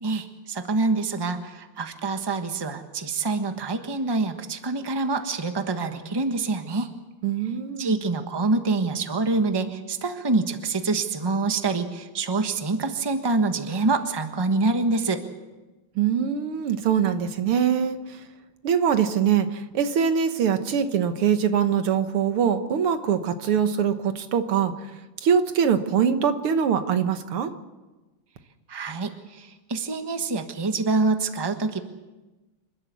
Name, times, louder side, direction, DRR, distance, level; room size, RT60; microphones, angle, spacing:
voice 1, 0.0-6.9 7.8-15.2 28.7-31.8, right 3 dB, 15° right, 7 dB, 1.0 m, -26 dB
voice 2, 7.2-8.0 16.0-18.0 18.6-24.7 25.2-27.5, right 8 dB, 85° right, 9 dB, 2.2 m, -23 dB
27.5 x 12.5 x 8.4 m, 1.1 s
omnidirectional pair, 2.3 m